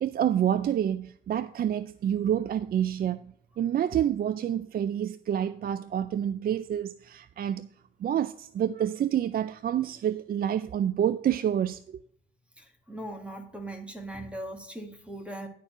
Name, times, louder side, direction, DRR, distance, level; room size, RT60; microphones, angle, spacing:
voice 1, 0.0-7.7 8.0-12.0, right 10 dB, 50° right, 0.4 m, -28 dB
voice 2, 12.6-15.5, right 1 dB, 5° right, 1.9 m, -39 dB
11.5 x 4.5 x 5.9 m
cardioid pair, 90°, 20 cm